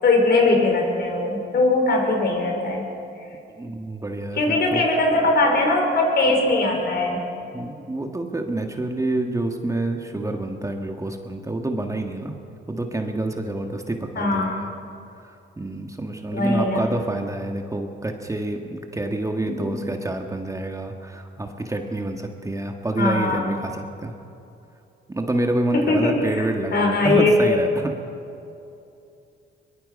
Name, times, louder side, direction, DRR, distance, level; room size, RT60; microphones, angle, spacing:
voice 1, 0.0-2.8 4.3-7.2 14.1-14.6 16.3-16.8 19.5-19.6 23.0-23.6 25.7-26.4 26.7-27.6, left 2 dB, 55° left, 1 dB, 5.1 m, -20 dB
voice 2, 3.5-4.8 7.5-12.3 12.7-14.7 15.2-24.2 25.1-27.9, right 2 dB, 15° right, 4 dB, 1.6 m, -28 dB
22.5 x 21.5 x 5.4 m, 2.7 s
cardioid pair, 90°, 20 cm